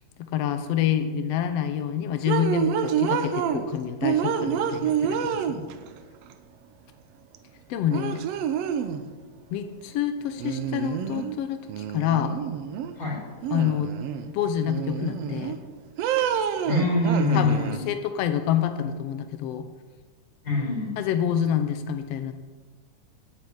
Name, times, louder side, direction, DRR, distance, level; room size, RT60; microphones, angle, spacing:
voice 1, 0.2-5.2 5.5-5.7 7.7-8.2 9.5-12.3 13.5-13.9 14.3-15.6 17.3-17.6 17.9-19.7 21.0-22.4, left 9 dB, 90° left, 8 dB, 1.4 m, -27 dB
sound 1, 2.3-3.6 4.0-5.9 7.3-7.4 7.9-9.0 10.4-11.4 11.7-12.9 13.4-14.3 14.7-15.6 16.0-17.8, right 9 dB, 85° right, 1.4 m, -27 dB
voice 2, 16.6-17.8 20.4-21.1, left 2 dB, 30° left, -3 dB, 4.9 m, -24 dB
8.8 x 8.1 x 8.6 m, 1.4 s
omnidirectional pair, 3.7 m